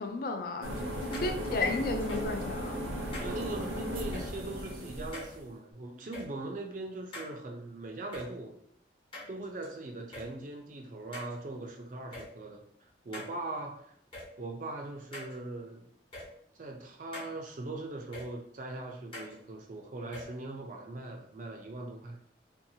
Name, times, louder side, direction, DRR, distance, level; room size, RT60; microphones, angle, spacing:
voice 1, 0.0-2.9, left 3 dB, 50° left, 5 dB, 0.3 m, -33 dB
sound 1, 0.6-5.4, equal, 90° right, 0.7 m, -36 dB
sound 2, 1.1-1.3 2.0-2.3 3.1-3.3 4.1-4.3 5.1-5.3 6.1-6.3 7.1-7.3 8.1-8.3 9.1-9.7 10.1-10.3 11.1-11.3 12.1-12.3 13.1-13.3 14.1-14.3 15.1-15.3 16.1-16.3 17.1-17.3 18.1-18.3 19.1-19.3 20.1-20.2, left 1 dB, 30° left, 0.7 m, -43 dB
voice 2, 3.2-8.6 9.3-12.6 13.0-13.9 14.4-15.9 16.5-22.2, right 2 dB, 45° right, 3 dB, 0.4 m, -40 dB
2.7 x 2.2 x 2.7 m, 0.69 s
head